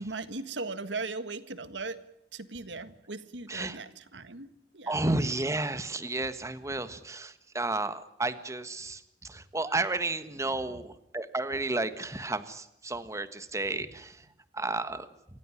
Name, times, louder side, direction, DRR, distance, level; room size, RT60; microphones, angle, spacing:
voice 1, 0.0-2.0 2.3-4.5 4.7-5.1 10.3-10.9, right 3 dB, 80° right, 12 dB, 1.7 m, -38 dB
voice 2, 4.9-9.0 9.3-14.1 14.5-15.1, right 2 dB, 15° right, 11 dB, 1.4 m, -32 dB
28.5 x 16.0 x 9.9 m, 0.81 s
head